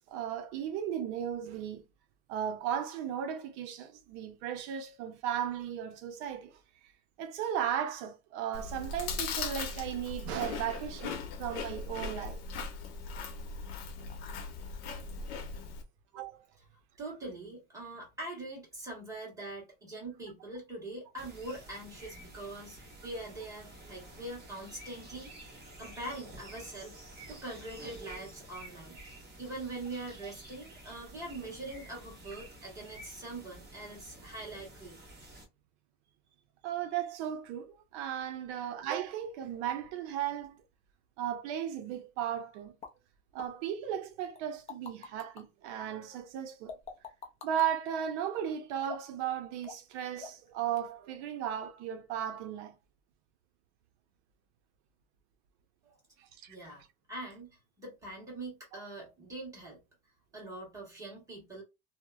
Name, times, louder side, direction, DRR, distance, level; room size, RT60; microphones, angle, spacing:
voice 1, 0.1-1.8 2.3-6.9 7.2-12.4 16.1-16.4 36.6-40.6 41.2-42.8 43.3-46.7 47.4-52.8 56.2-56.6 58.7-58.8, right 9 dB, 80° right, 0.6 m, -36 dB
Chewing mastication, 8.5-15.8, left 4 dB, 65° left, 0.8 m, -39 dB
voice 2, 17.0-26.9 27.3-29.0 29.4-35.0 55.8-56.0 56.5-56.8 57.1-59.8 60.3-61.6, right 2 dB, 10° right, 1.4 m, -43 dB
sound 1, 21.2-35.5, right 1 dB, 30° right, 1.1 m, -50 dB
sound 2, 42.8-42.9 43.4-43.5 44.4-45.4 46.7-47.7 48.8-49.2 49.6-49.9 50.2-50.5 50.8-50.9, left 5 dB, 20° left, 0.4 m, -44 dB
2.8 x 2.0 x 2.3 m
cardioid pair, 150°, 34 cm